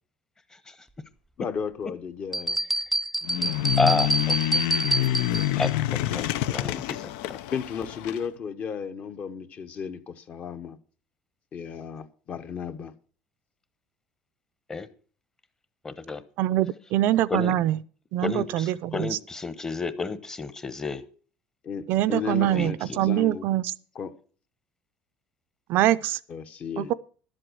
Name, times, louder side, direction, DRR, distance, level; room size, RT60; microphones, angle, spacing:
voice 1, 1.4-2.6 6.6-6.9 7.5-10.8 11.5-12.9 21.6-23.5 23.9-24.1 26.3-26.9, left 7 dB, 40° left, 1.0 m, -34 dB
sound 1, 2.3-5.7, right 1 dB, ahead, 0.5 m, -27 dB
sound 2, 3.2-8.2, left 14 dB, 85° left, 0.5 m, -27 dB
voice 2, 3.8-4.6 5.6-5.7 6.1-7.4 14.7-14.9 15.8-16.2 17.3-17.5 18.2-21.0 22.5-22.7, left 3 dB, 15° left, 0.9 m, -30 dB
voice 3, 16.4-17.8 18.1-19.2 21.9-23.7 25.7-26.2 26.8-26.9, right 13 dB, 60° right, 0.5 m, -24 dB
11.5 x 7.7 x 6.2 m
cardioid pair, 135°, 4 cm